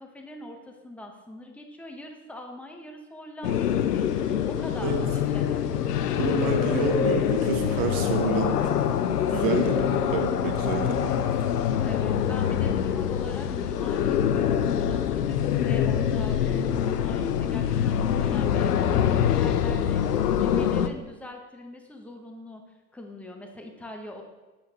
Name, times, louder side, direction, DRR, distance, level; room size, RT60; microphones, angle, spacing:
voice 1, 0.0-5.7 11.8-22.6 22.9-24.2, left 1 dB, 5° left, 2 dB, 0.9 m, -42 dB
sound 1, 3.4-20.9, left 9 dB, 90° left, 0.6 m, -25 dB
voice 2, 6.2-8.9 9.3-11.1, right 4 dB, 50° right, 4 dB, 1.3 m, -28 dB
8.2 x 6.5 x 2.9 m, 1.2 s
hypercardioid pair, 90°, 46 cm